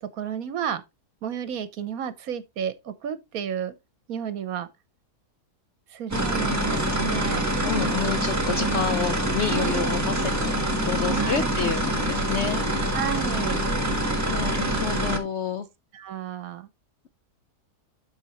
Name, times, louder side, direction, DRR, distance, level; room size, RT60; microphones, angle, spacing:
voice 1, 0.0-0.8 1.2-3.7 4.1-4.7 5.9-7.5 9.5-9.9 11.1-11.5 12.9-13.7 15.9-16.7, right 8 dB, 65° right, 1.2 m, -32 dB
sound 1, 6.1-15.2, right 1 dB, 10° right, 1.1 m, -25 dB
voice 2, 7.7-10.6 10.8-12.7 14.3-15.7, left 6 dB, 65° left, 0.7 m, -29 dB
12.5 x 4.4 x 2.9 m
omnidirectional pair, 1.8 m